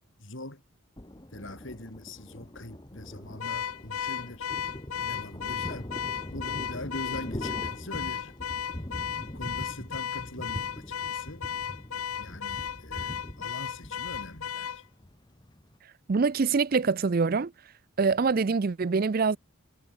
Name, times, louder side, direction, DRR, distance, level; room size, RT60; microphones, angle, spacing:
voice 1, 0.2-0.6 1.3-4.5 5.0-5.9 6.3-8.3 9.3-11.5 12.2-14.8, left 1 dB, 60° left, 3.8 m, -42 dB
Thunder, 1.0-15.8, left 1 dB, 20° left, 1.4 m, -42 dB
Car / Alarm, 3.4-14.8, left 8 dB, 85° left, 0.7 m, -35 dB
voice 2, 16.1-17.5 18.0-19.4, right 4 dB, 40° right, 0.4 m, -24 dB
head